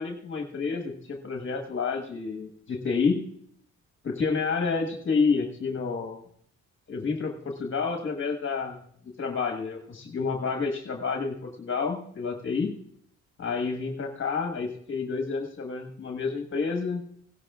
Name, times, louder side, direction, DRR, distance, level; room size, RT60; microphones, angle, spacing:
voice 1, 0.0-3.3 4.0-6.2 6.9-8.8 9.2-12.8 13.4-17.0, left 4 dB, 40° left, 4 dB, 1.5 m, -29 dB
17.0 x 11.5 x 2.4 m, 0.66 s
cardioid pair, 90°, 30 cm